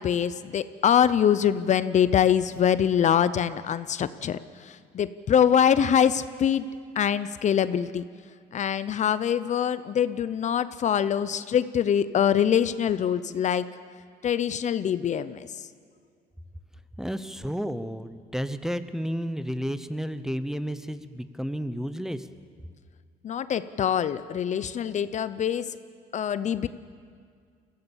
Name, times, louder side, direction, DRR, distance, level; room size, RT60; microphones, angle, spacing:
voice 1, 0.0-4.4 4.9-6.7 7.0-8.0 8.5-13.7 14.2-15.5 23.2-25.7 26.1-26.7, left 8 dB, 45° left, 14 dB, 0.6 m, -24 dB
voice 2, 17.0-22.3, equal, 5° right, 12 dB, 0.8 m, -32 dB
23.0 x 16.0 x 7.2 m, 2.1 s
cardioid pair, 110°, 17 cm